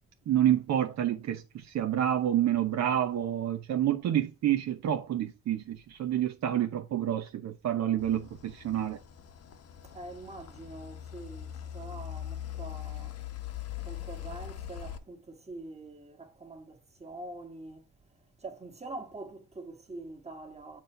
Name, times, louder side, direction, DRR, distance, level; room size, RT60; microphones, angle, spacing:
voice 1, 0.3-9.0, right 11 dB, 60° right, 0.7 m, -28 dB
sound 1, 8.0-15.0, left 11 dB, 55° left, 0.9 m, -41 dB
voice 2, 9.9-13.1 13.8-17.8 18.4-20.8, right 2 dB, 20° right, 1.7 m, -44 dB
7.5 x 2.7 x 5.5 m
cardioid pair, 90°, 30 cm